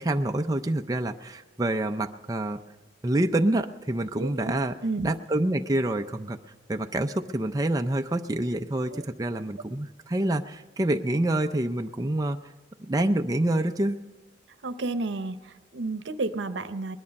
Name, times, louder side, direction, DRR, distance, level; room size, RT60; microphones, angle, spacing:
voice 1, 0.0-2.6 3.0-4.7 5.0-6.4 6.7-12.4 12.8-14.0, right 1 dB, 20° right, 5 dB, 0.4 m, -27 dB
voice 2, 4.1-4.5 4.8-5.1 8.9-9.0 14.6-17.0, right 3 dB, 85° right, 11 dB, 0.8 m, -31 dB
21.0 x 11.0 x 5.2 m, 1.1 s
head